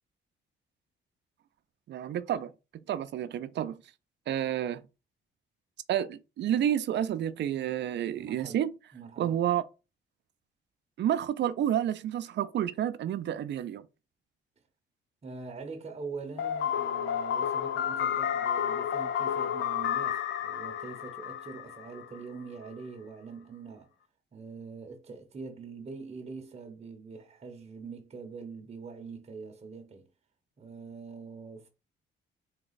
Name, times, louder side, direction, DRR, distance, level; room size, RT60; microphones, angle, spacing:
voice 1, 1.9-3.8 4.3-4.8 5.9-8.7 9.2-9.6 11.0-13.9, right 10 dB, 60° right, 0.5 m, -30 dB
voice 2, 8.2-8.6 8.9-9.4 15.2-23.9 24.3-30.1 30.6-31.7, right 4 dB, 35° right, 0.8 m, -43 dB
sound 1, 16.4-22.2, left 9 dB, 75° left, 0.5 m, -31 dB
4.0 x 2.3 x 3.9 m
cardioid pair, 90°, 20 cm